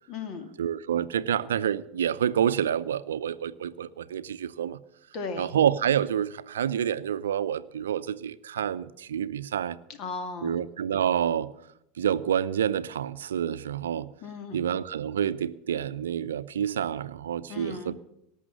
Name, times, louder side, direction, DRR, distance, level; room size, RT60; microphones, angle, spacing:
voice 1, 0.1-0.5 5.1-5.5 10.0-10.6 14.2-14.6 17.5-17.9, left 4 dB, 45° left, 2.3 m, -36 dB
voice 2, 0.6-4.8 5.4-9.8 10.4-11.5 12.0-14.1 14.5-17.9, right 9 dB, 75° right, 0.6 m, -28 dB
18.5 x 6.5 x 8.8 m
hypercardioid pair, 85°, 0 cm